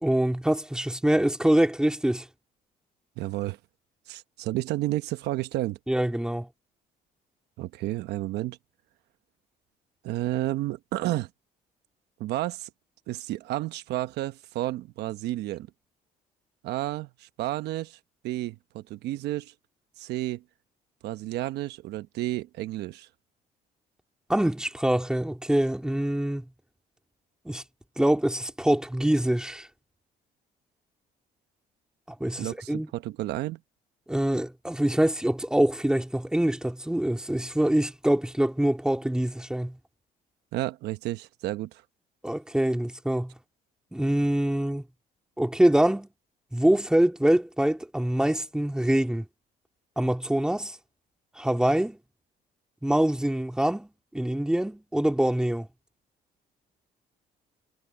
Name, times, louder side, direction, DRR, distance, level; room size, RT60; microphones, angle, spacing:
voice 1, 0.0-2.2 5.9-6.5 24.3-26.4 27.4-27.6 28.0-29.7 32.2-32.9 34.1-39.8 42.2-43.3 43.9-44.8 45.4-46.1 46.5-49.2 50.0-50.8 51.4-52.0 52.8-53.9 54.1-55.7, right 1 dB, 5° right, 2.8 m, -24 dB
voice 2, 3.2-3.6 4.1-5.8 7.6-8.6 10.0-11.3 12.2-12.7 13.1-15.7 16.6-18.0 18.2-19.5 20.0-20.4 21.0-23.1 32.4-33.6 40.5-41.8, right 15 dB, 80° right, 1.0 m, -31 dB
cardioid pair, 110°, 17 cm